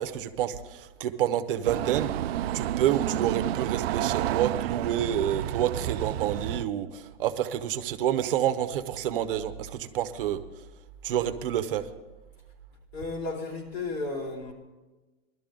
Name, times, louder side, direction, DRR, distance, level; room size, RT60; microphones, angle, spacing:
voice 1, 0.0-2.1 2.5-10.4 11.0-11.9, right 10 dB, 60° right, 8 dB, 0.9 m, -28 dB
sound 1, 1.6-6.6, right 13 dB, 80° right, 0.5 m, -30 dB
voice 2, 12.9-14.5, left 3 dB, 85° left, 0 dB, 3.9 m, -33 dB
19.0 x 12.5 x 3.8 m, 1.2 s
supercardioid pair, 165°, 31 cm